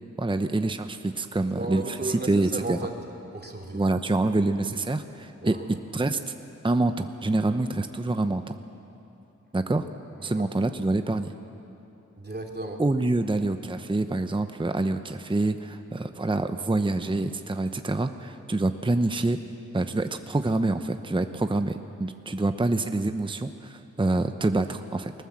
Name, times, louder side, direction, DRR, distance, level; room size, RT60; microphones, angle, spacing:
voice 1, 0.2-2.8 3.7-6.3 6.6-8.5 9.5-9.9 10.2-11.3 12.8-19.4 19.7-25.1, right 2 dB, 15° right, 8 dB, 0.8 m, -26 dB
voice 2, 1.5-2.9 3.3-3.8 5.4-5.6 10.2-10.5 12.2-12.8, right 2 dB, 35° right, 1 dB, 2.8 m, -34 dB
21.5 x 19.0 x 7.6 m, 2.8 s
wide cardioid pair, 65°, 30 cm